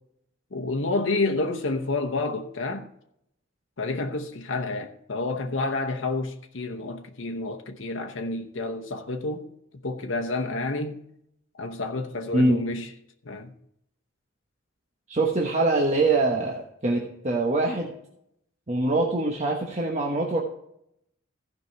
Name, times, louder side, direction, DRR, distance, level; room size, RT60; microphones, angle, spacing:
voice 1, 0.5-2.9 3.8-9.5 9.8-11.0 11.6-12.9 13.2-13.5, left 2 dB, 70° left, 0.9 m, -29 dB
voice 2, 15.1-17.9 18.7-20.4, right 2 dB, 35° right, 1.1 m, -24 dB
15.5 x 5.3 x 4.6 m
head